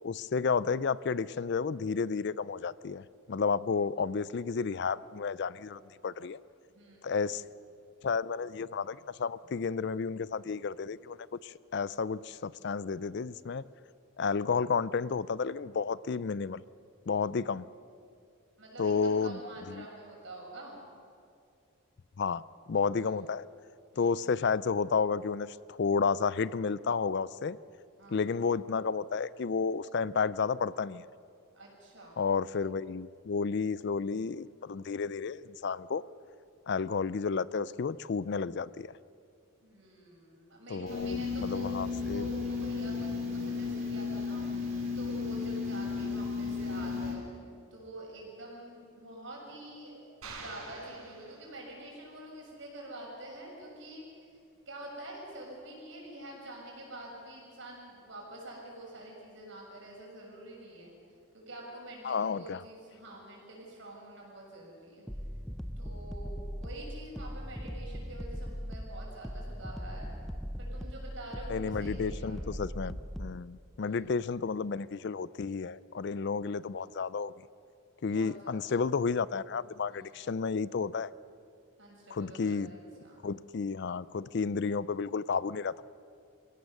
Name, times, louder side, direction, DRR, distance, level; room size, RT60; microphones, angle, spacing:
voice 1, 0.0-3.0 3.3-6.4 7.0-7.4 8.0-11.2 11.4-13.6 14.2-16.6 17.1-17.7 18.8-19.4 19.8-19.9 22.2-22.4 22.7-23.4 24.0-27.6 28.1-31.0 32.2-36.0 36.7-38.9 40.7-42.3 62.0-62.6 71.5-77.3 78.0-81.1 82.1-82.7 83.2-85.9, left 5 dB, 50° left, 19 dB, 0.4 m, -31 dB
voice 2, 6.7-7.3 18.6-20.8 22.9-23.2 23.9-24.2 28.0-28.2 31.5-32.2 39.6-47.2 47.7-49.9 50.4-54.4 54.7-60.9 61.3-65.1 65.8-70.1 70.6-72.5 73.7-74.0 78.0-78.8 79.9-80.3 81.8-83.3, right 1 dB, 60° right, -2 dB, 6.3 m, -47 dB
sound 1, 40.9-47.1, left 4 dB, 30° right, 4.7 m, -34 dB
sound 2, 50.2-51.9, right 3 dB, 85° right, 4.7 m, -47 dB
sound 3, 65.1-73.4, equal, ahead, 0.5 m, -39 dB
27.0 x 16.0 x 6.6 m, 2.4 s
head